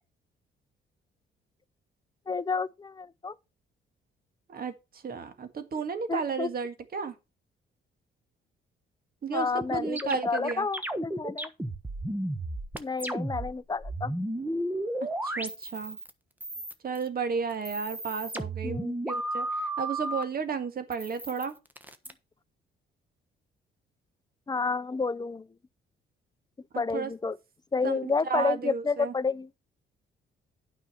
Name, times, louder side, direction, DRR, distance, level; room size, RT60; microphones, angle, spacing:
voice 1, 2.3-3.4 6.1-6.5 9.3-11.5 12.8-14.1 18.6-18.9 24.5-25.5 26.8-27.4 27.7-29.5, left 4 dB, 20° left, 0.5 m, -30 dB
voice 2, 4.5-7.2 9.2-10.7 15.2-16.0 16.8-18.8 19.1-21.5 26.7-27.1 27.8-29.1, right 5 dB, 50° right, 1.9 m, -33 dB
sound 1, 9.6-13.5 13.8-16.1 16.4-17.1 17.5-20.2 20.9-22.1, right 1 dB, 10° right, 1.2 m, -33 dB
9.2 x 5.6 x 5.7 m
cardioid pair, 90°, 20 cm